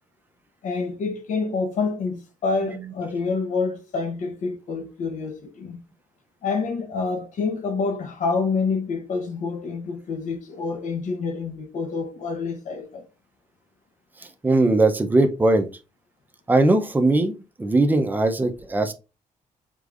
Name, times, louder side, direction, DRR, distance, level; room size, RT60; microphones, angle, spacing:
voice 1, 0.6-5.8 6.4-13.1, left 4 dB, 65° left, 1.0 m, -27 dB
voice 2, 14.4-15.7 16.5-18.9, right 2 dB, 15° right, 0.6 m, -20 dB
5.1 x 3.7 x 2.5 m
cardioid pair, 140°, 14 cm